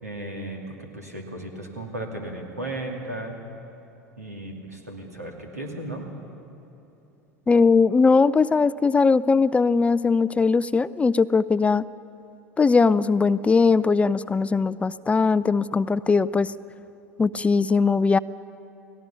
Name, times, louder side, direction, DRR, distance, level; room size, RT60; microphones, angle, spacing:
voice 1, 0.0-3.4 4.2-6.1, right 1 dB, 85° right, 1 dB, 2.8 m, -35 dB
voice 2, 7.5-11.8 12.6-16.5 17.2-18.2, left 4 dB, 15° left, 16 dB, 0.4 m, -20 dB
30.0 x 19.0 x 5.7 m, 2.9 s
figure-of-eight pair, 75°, 8 cm